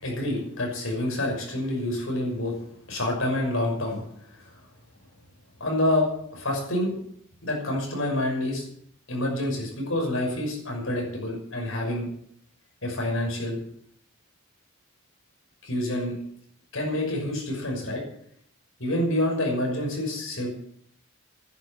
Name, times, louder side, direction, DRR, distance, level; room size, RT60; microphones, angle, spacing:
voice 1, 0.0-2.5 2.9-4.0 5.6-6.9 7.4-8.6 9.1-12.1 12.8-13.6 15.6-16.1 16.7-18.0 18.8-20.5, left 1 dB, 75° left, 0 dB, 6.1 m, -27 dB
11.0 x 10.5 x 8.5 m, 0.68 s
head